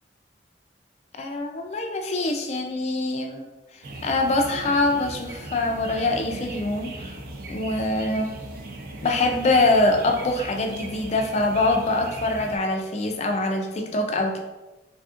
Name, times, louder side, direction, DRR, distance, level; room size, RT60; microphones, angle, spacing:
voice 1, 1.2-3.4 4.0-7.2 7.5-8.3 9.0-14.4, left 2 dB, 35° left, 3 dB, 0.3 m, -24 dB
sound 1, 3.8-12.6, right 2 dB, 50° right, 0.4 m, -38 dB
3.4 x 2.4 x 2.4 m, 1.1 s
head